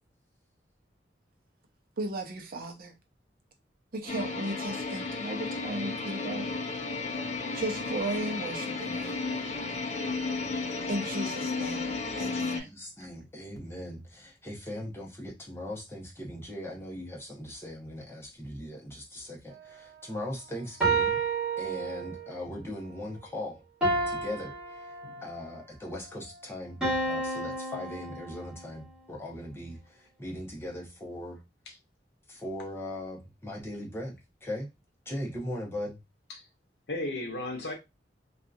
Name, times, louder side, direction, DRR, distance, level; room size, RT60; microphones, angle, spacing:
voice 1, 2.0-2.9 3.9-6.5 7.5-9.2 10.9-12.7, right 2 dB, 55° right, 0.6 m, -35 dB
sound 1, 4.1-12.6, left 3 dB, 40° left, 0.4 m, -33 dB
voice 2, 12.3-21.2 21.6-23.6 24.1-24.9 25.2-31.4 32.3-34.2 34.4-34.7 35.1-36.0, left 1 dB, 15° left, 0.8 m, -39 dB
sound 2, 20.8-22.4 23.8-25.5 26.8-28.7, right 3 dB, 5° right, 1.4 m, -30 dB
voice 3, 36.9-37.7, left 2 dB, 65° left, 0.7 m, -35 dB
2.7 x 2.4 x 2.3 m
head